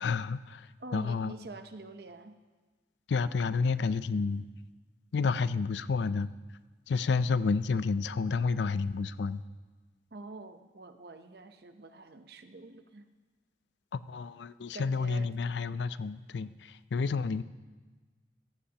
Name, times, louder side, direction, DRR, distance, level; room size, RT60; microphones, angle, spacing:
voice 1, 0.0-0.7 0.9-1.3 3.1-4.5 5.1-6.3 6.9-9.4 13.9-17.4, left 4 dB, 80° left, 15 dB, 0.4 m, -30 dB
voice 2, 0.8-2.4 10.1-13.1 14.7-15.3, right 2 dB, 65° right, 8 dB, 0.8 m, -46 dB
16.5 x 15.0 x 2.9 m, 1.3 s
head